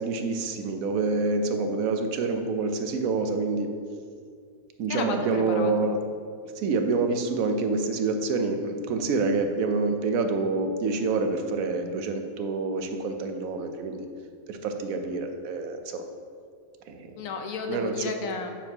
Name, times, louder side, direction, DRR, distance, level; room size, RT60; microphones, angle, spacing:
voice 1, 0.0-3.7 4.8-6.0 6.6-14.1 14.5-16.0 16.9-17.1 17.7-17.9, right 3 dB, 85° right, 6 dB, 1.1 m, -27 dB
voice 2, 4.9-5.7 17.2-18.5, left 4 dB, 85° left, 5 dB, 1.2 m, -32 dB
9.0 x 7.1 x 2.8 m, 2.1 s
omnidirectional pair, 1.4 m